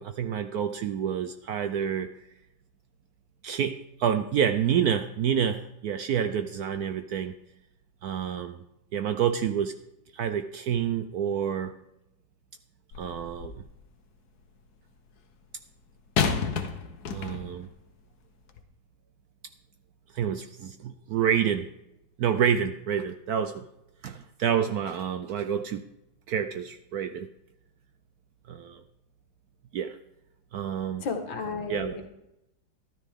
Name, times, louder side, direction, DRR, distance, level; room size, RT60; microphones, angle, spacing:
voice 1, 0.0-2.1 3.4-7.4 8.0-8.6 8.9-9.8 10.1-11.8 13.0-13.6 17.1-17.7 20.1-21.7 22.2-23.7 24.0-25.8 26.3-27.3 28.5-28.8 29.7-30.0 30.5-31.1 31.7-32.0, right 8 dB, 70° right, 10 dB, 0.9 m, -28 dB
sound 1, 12.9-13.7 16.2-17.7 18.5-18.6, left 6 dB, 60° left, 1.4 m, -30 dB
voice 2, 31.0-32.1, left 4 dB, 75° left, 5 dB, 2.1 m, -33 dB
13.5 x 12.5 x 3.6 m, 0.86 s
omnidirectional pair, 2.1 m